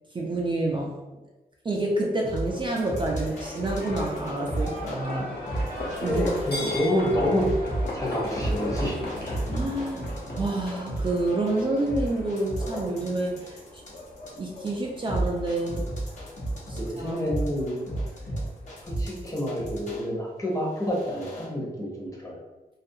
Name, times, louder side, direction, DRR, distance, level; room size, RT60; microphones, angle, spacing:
voice 1, 0.1-0.9 1.6-5.5 6.0-6.5 9.5-10.1 10.3-13.6 14.4-15.9 16.7-17.2, right 2 dB, 30° right, -1 dB, 0.3 m, -28 dB
sound 1, 2.3-5.0 5.5-6.8 7.1-20.0 20.6-21.5, right 1 dB, 50° left, 0.8 m, -32 dB
Livestock farm animals working animals, 2.4-18.9, left 1 dB, 80° left, 0.8 m, -37 dB
voice 2, 6.0-7.5 7.9-9.0 16.8-17.8 18.8-22.4, left 1 dB, 20° left, -4 dB, 0.7 m, -28 dB
2.4 x 2.2 x 2.6 m, 1.1 s
wide cardioid pair, 100°, 16 cm